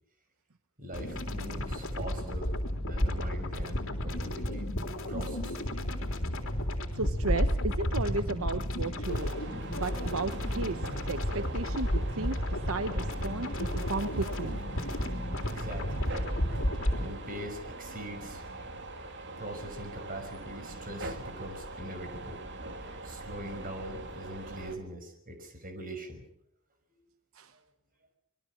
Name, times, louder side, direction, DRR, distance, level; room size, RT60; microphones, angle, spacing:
voice 1, 0.8-4.7 5.1-5.6 15.3-16.1 17.0-18.5 19.4-22.5 23.0-26.2 26.9-27.0 27.5-27.6, right 1 dB, 40° right, 6 dB, 5.9 m, -42 dB
sound 1, 0.9-17.0, left 1 dB, 65° left, 3.6 m, -32 dB
voice 2, 6.9-14.6 27.3-27.5, right 3 dB, 75° right, 11 dB, 1.0 m, -34 dB
sound 2, 9.1-24.8, right 2 dB, 55° right, 2.8 m, -42 dB
26.0 x 21.5 x 6.4 m, 0.69 s
head